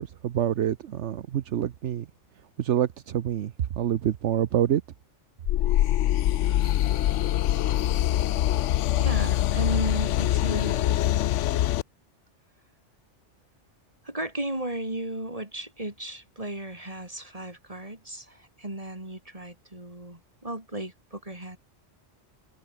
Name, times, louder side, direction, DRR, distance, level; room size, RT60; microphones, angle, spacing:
voice 1, 0.0-2.1 2.6-4.8, right 10 dB, 75° right, 1.1 m, -26 dB
sound 1, 5.5-11.8, left 13 dB, 85° left, 0.9 m, -24 dB
voice 2, 8.9-11.1 14.0-21.6, right 1 dB, 30° right, 4.8 m, -35 dB
omnidirectional pair, 1.2 m